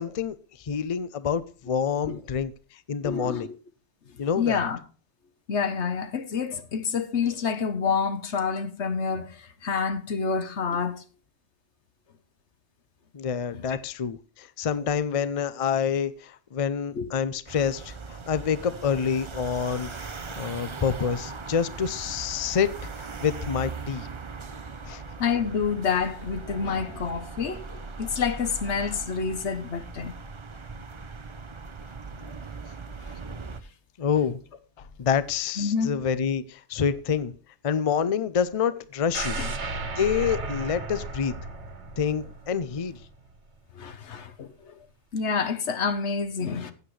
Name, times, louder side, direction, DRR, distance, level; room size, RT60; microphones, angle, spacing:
voice 1, 0.0-3.5 4.2-4.6 13.1-22.7 23.0-24.1 24.9-25.0 34.0-34.4 35.0-37.3 37.6-39.4 40.0-41.3 42.0-43.0, left 7 dB, 40° left, 0.6 m, -27 dB
voice 2, 3.0-3.5 4.4-4.8 5.5-11.0 13.5-13.8 16.9-17.1 25.2-30.1 35.6-36.0 39.4-39.5 43.8-44.8 45.1-46.7, left 6 dB, 80° left, 1.4 m, -28 dB
sound 1, 17.5-33.6, right 4 dB, 30° right, 0.7 m, -39 dB
sound 2, 39.1-43.1 43.5-43.6, right 3 dB, 80° right, 1.6 m, -34 dB
15.5 x 8.1 x 3.2 m
omnidirectional pair, 1.1 m